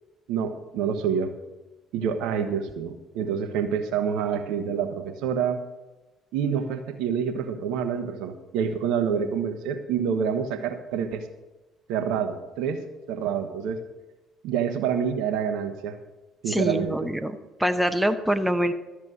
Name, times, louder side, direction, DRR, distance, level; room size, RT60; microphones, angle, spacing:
voice 1, 0.3-1.3 1.9-5.6 6.3-11.3 11.9-12.8 13.1-13.8 14.4-16.0 16.4-17.0, right 7 dB, 65° right, 8 dB, 1.0 m, -27 dB
voice 2, 16.5-18.7, equal, 5° right, 7 dB, 1.1 m, -25 dB
13.0 x 7.3 x 6.3 m, 1.1 s
figure-of-eight pair, 50°, 0 cm